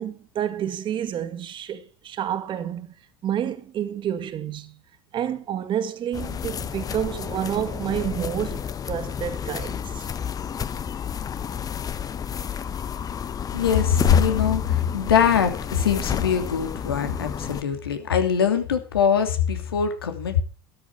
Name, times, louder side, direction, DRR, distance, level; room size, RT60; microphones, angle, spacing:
voice 1, 0.0-2.9 3.2-4.7 5.1-10.1, right 10 dB, 40° right, 2.2 m, -29 dB
sound 1, 6.1-17.6, left 8 dB, 30° left, 1.0 m, -30 dB
voice 2, 13.5-20.4, left 8 dB, 85° left, 2.8 m, -22 dB
13.0 x 12.5 x 4.8 m
hypercardioid pair, 80°, 12 cm